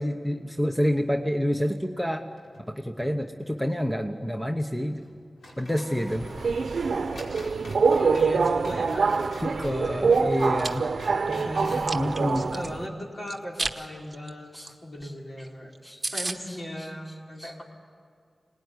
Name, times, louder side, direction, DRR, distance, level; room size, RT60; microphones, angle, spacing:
voice 1, 0.0-2.3 2.6-5.0 5.6-6.3 9.4-10.9 11.9-12.5 14.5-14.7 15.8-16.0 17.4-17.5, equal, 5° left, 4 dB, 1.0 m, -28 dB
sound 1, 2.3-3.1 3.4-3.5 5.0-5.2 5.4-12.0, left 1 dB, 85° left, 4.9 m, -46 dB
Subway metro underground, 6.1-12.9, right 4 dB, 75° right, 0.8 m, -25 dB
voice 2, 8.0-10.7 11.3-11.9 12.2-15.7 16.1-17.6, equal, 50° left, -2 dB, 4.6 m, -38 dB
Chewing mastication, 10.3-10.7 11.2-12.7 13.3-13.8 14.1-14.3 14.7-14.8 15.0-15.1 15.5-15.6 15.7-15.8 16.0-16.4, right 2 dB, 30° right, 1.2 m, -32 dB
25.5 x 19.5 x 9.6 m, 2.2 s
wide cardioid pair, 95°, 0 cm